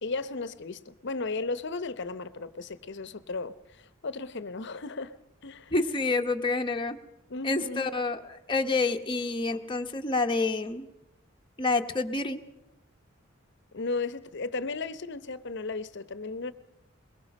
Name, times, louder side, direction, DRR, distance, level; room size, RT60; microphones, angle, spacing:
voice 1, 0.0-5.1 5.4-5.7 7.3-7.9 13.7-16.5, left 3 dB, 60° left, 0.8 m, -35 dB
voice 2, 5.7-7.0 7.4-10.9 11.6-12.4, left 3 dB, 25° left, 0.9 m, -28 dB
23.0 x 21.5 x 5.3 m
head